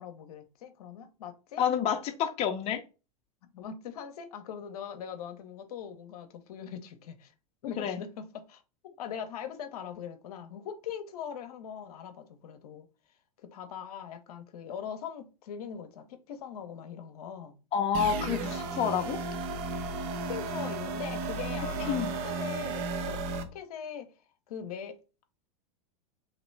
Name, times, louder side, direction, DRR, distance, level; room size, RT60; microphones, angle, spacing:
voice 1, 0.0-1.6 3.5-7.3 7.6-8.6 9.0-12.9 13.4-17.6 20.3-22.0 22.2-25.0, left 8 dB, 70° left, 0.7 m, -41 dB
voice 2, 1.6-2.8 7.8-8.0 17.7-19.2 21.9-22.1, left 8 dB, 35° left, 0.5 m, -29 dB
sound 1, 17.9-23.4, right 3 dB, 50° right, 0.7 m, -34 dB
3.0 x 2.9 x 3.2 m
hypercardioid pair, 100°, 20 cm